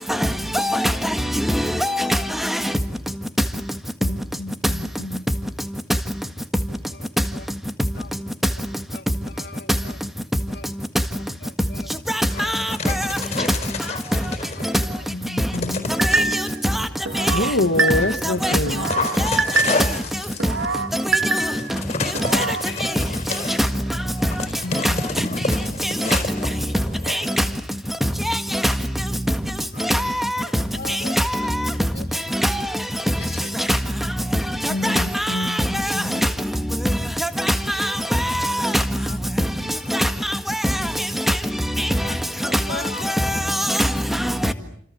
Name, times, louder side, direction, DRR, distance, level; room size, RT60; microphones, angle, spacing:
voice 1, 0.1-2.7 12.1-13.5 14.6-14.7 15.9-16.9 17.1-17.3 18.2-18.6 19.2-19.8 20.9-21.4 21.7-21.8 22.3-22.4 22.8-22.9 23.5-23.6 24.8-24.9 25.5-26.1 27.1-27.4 28.2-28.7 29.8-30.4 30.8-31.7 32.3-32.7 33.5-33.8 34.3-36.3 37.2-38.8 39.4-39.5 39.9-41.4 41.8-42.1 42.5-44.5, equal, ahead, 1.7 m, -23 dB
voice 2, 9.4-10.0 10.5-10.7 11.4-11.9 12.3-12.5 14.2-15.0 22.2-23.1 29.7-29.9 30.4-32.2 33.2-33.5 36.1-36.2 38.4-39.2 39.7-40.1 42.0-42.2 42.4-43.1, left 4 dB, 55° left, 2.7 m, -39 dB
Dog, 12.1-15.0 15.5-16.6 17.2-27.5, left 3 dB, 30° left, 4.4 m, -30 dB
voice 3, 15.3-15.9 17.3-18.8 24.6-24.8 25.4-25.5 34.7-35.6 35.9-36.2, left 2 dB, 70° left, 1.4 m, -25 dB
sound 1, 16.0-16.6 17.0-18.3 18.7-20.0 20.4-21.7 22.1-22.6, right 3 dB, 75° right, 1.9 m, -24 dB
29.5 x 26.5 x 7.3 m
head